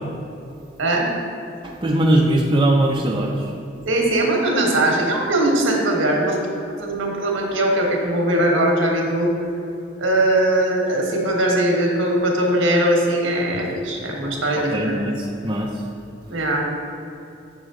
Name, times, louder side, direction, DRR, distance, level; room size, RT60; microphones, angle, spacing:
voice 1, 1.6-3.5 14.5-15.7, right 1 dB, 25° right, -2 dB, 0.5 m, -20 dB
voice 2, 3.8-6.4 6.8-9.3 10.0-15.0 16.3-16.6, right 1 dB, 80° right, 0 dB, 1.3 m, -20 dB
7.1 x 6.5 x 3.7 m, 2.7 s
head